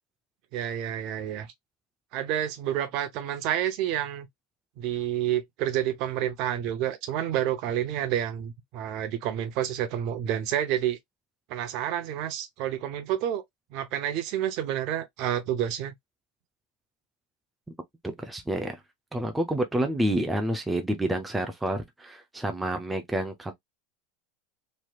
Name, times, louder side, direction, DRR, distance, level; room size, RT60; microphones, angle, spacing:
voice 1, 0.5-1.5 2.1-4.3 4.8-11.0 11.5-13.4 13.7-15.9, right 11 dB, 45° right, 0.7 m, -29 dB
voice 2, 18.0-18.8 19.1-23.5, right 1 dB, 5° right, 0.4 m, -29 dB
3.2 x 2.8 x 2.3 m
supercardioid pair, 160°, 0 cm